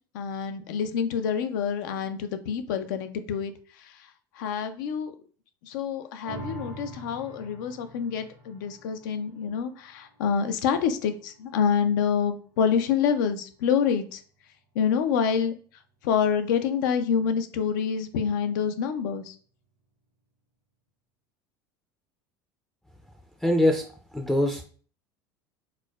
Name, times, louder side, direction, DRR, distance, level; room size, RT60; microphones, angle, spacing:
voice 1, 0.1-3.5 4.4-5.1 5.6-14.2 14.8-15.5 16.0-19.3, left 7 dB, 80° left, 9 dB, 0.4 m, -27 dB
sound 1, 6.2-12.9 13.4-13.5, right 2 dB, 90° right, 1.2 m, -46 dB
voice 2, 23.4-23.9 24.1-24.6, left 1 dB, 5° left, 2 dB, 0.4 m, -22 dB
4.4 x 2.1 x 2.3 m, 0.42 s
supercardioid pair, 95°, 10 cm